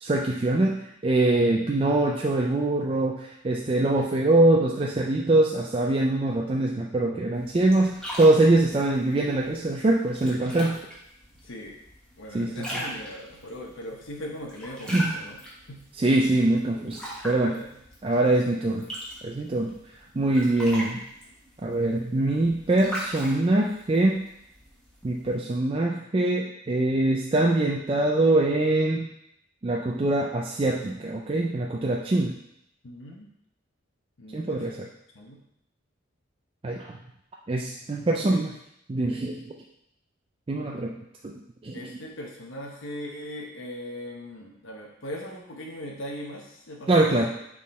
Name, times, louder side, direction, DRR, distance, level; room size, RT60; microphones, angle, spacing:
voice 1, 0.0-10.8 12.3-12.7 14.9-15.1 16.0-17.0 17.2-17.6 18.0-18.9 19.2-19.7 20.1-21.0 21.6-24.2 25.0-29.1 29.6-32.3 34.3-34.9 36.6-37.0 37.5-38.5 38.9-39.4 40.5-41.0 41.2-41.3 41.6-41.9 46.9-47.3, right 2 dB, 25° right, -1 dB, 0.4 m, -23 dB
sound 1, 7.3-25.4, equal, 5° left, 1.3 m, -41 dB
voice 2, 11.4-11.8 12.2-15.4 15.7-15.8 17.3-17.7 18.3-18.4 32.8-33.3 34.2-34.8 35.1-35.4 38.2-38.5 41.7-47.2, equal, 65° left, -1 dB, 0.9 m, -39 dB
6.4 x 3.7 x 4.2 m, 0.78 s
head